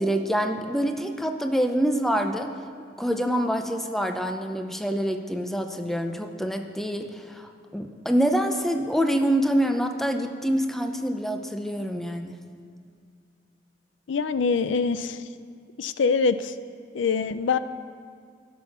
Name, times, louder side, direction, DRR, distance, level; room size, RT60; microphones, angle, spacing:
voice 1, 0.0-2.5 3.0-12.4, equal, ahead, 5 dB, 0.6 m, -26 dB
voice 2, 14.1-15.2 15.8-16.5 16.9-17.6, left 5 dB, 90° left, 13 dB, 0.5 m, -24 dB
16.0 x 6.3 x 5.9 m, 2.2 s
head